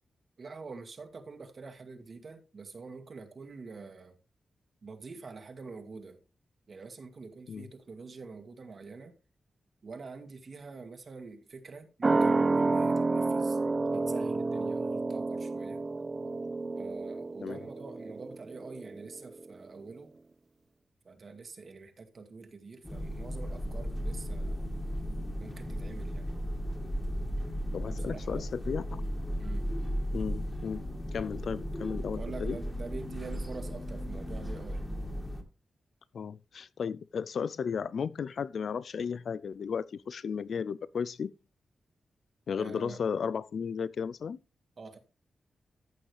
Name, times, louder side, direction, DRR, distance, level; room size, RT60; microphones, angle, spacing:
voice 1, 0.4-4.2 4.8-6.2 6.7-9.1 9.8-13.6 13.9-15.8 16.8-20.1 21.0-24.7 25.4-26.3 27.8-28.5 29.4-29.7 32.1-34.8 42.5-43.0 44.8-45.0, right 4 dB, 55° right, 2.0 m, -46 dB
sound 1, 12.0-19.1 19.4-19.5, right 3 dB, 35° right, 0.5 m, -29 dB
sound 2, 22.8-35.4, equal, 10° left, 2.3 m, -35 dB
voice 2, 27.7-29.0 30.1-30.8 31.1-32.6 36.1-41.3 42.5-44.4, left 6 dB, 70° left, 0.4 m, -34 dB
14.5 x 6.3 x 3.4 m
cardioid pair, 80°, 0 cm